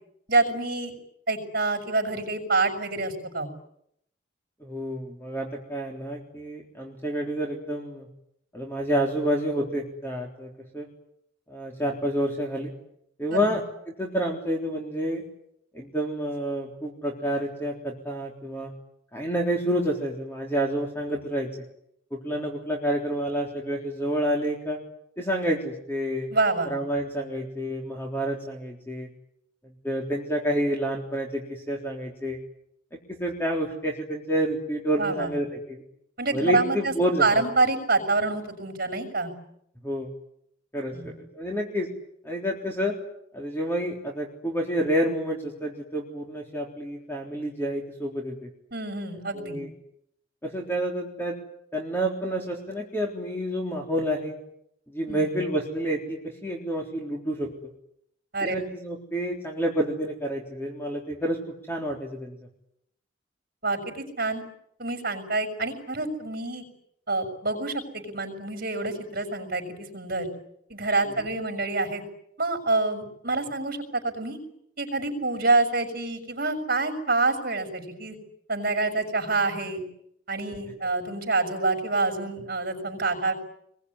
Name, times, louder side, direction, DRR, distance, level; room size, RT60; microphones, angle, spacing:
voice 1, 0.3-0.9 1.3-3.5 13.3-13.6 26.3-26.7 35.0-35.3 36.2-36.9 37.2-39.3 40.9-41.1 48.7-49.6 55.1-55.3 58.3-58.6 63.6-64.4 64.8-66.6 67.1-70.3 70.7-72.0 72.4-74.4 74.8-78.2 78.5-79.8 80.3-83.3, right 3 dB, 50° right, 3 dB, 6.1 m, -27 dB
voice 2, 4.6-8.1 8.5-10.9 11.5-12.7 13.2-13.6 14.0-15.2 15.7-18.7 19.1-21.5 22.1-24.8 25.2-26.3 26.6-29.1 29.8-32.4 33.1-35.8 36.3-37.3 39.8-40.1 40.7-41.9 42.2-42.9 43.3-48.5 49.3-49.7 50.4-51.4 51.7-54.4 54.9-57.5 58.4-61.4 61.7-62.4 71.2-71.3, equal, 10° left, 0 dB, 3.6 m, -29 dB
27.5 x 22.0 x 9.8 m, 0.77 s
head